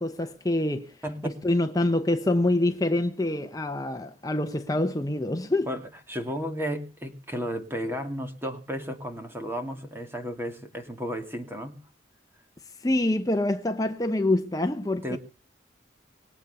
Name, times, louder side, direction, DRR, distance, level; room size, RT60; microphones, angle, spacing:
voice 1, 0.0-5.7 12.8-15.2, left 1 dB, 20° left, 0.8 m, -26 dB
voice 2, 1.0-1.4 5.7-5.8 6.1-11.8 15.0-15.2, equal, 15° right, 2.6 m, -33 dB
22.5 x 8.4 x 6.9 m
head